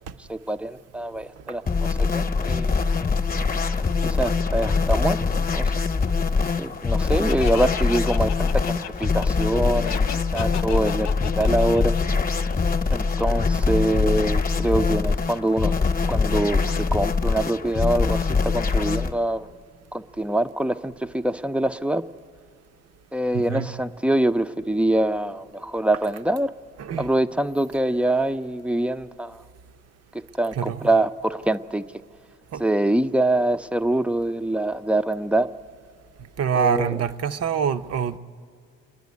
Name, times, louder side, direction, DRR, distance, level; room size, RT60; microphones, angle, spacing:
voice 1, 0.2-3.1 4.0-5.7 6.6-10.1 10.3-11.9 12.9-15.7 16.1-19.5 19.9-22.0 23.1-26.5 27.0-29.4 30.1-31.9 32.6-35.5 36.6-37.0, right 1 dB, 5° right, 11 dB, 0.4 m, -24 dB
sound 1, 1.7-19.1, left 4 dB, 30° left, 0.9 m, -23 dB
Laughter, 7.3-12.9, left 11 dB, 65° left, 0.5 m, -35 dB
voice 2, 23.3-23.7 26.8-27.1 30.5-30.9 32.5-32.6 36.4-38.2, right 7 dB, 55° right, 10 dB, 0.7 m, -25 dB
28.0 x 10.5 x 9.4 m, 2.3 s
cardioid pair, 90°, 30 cm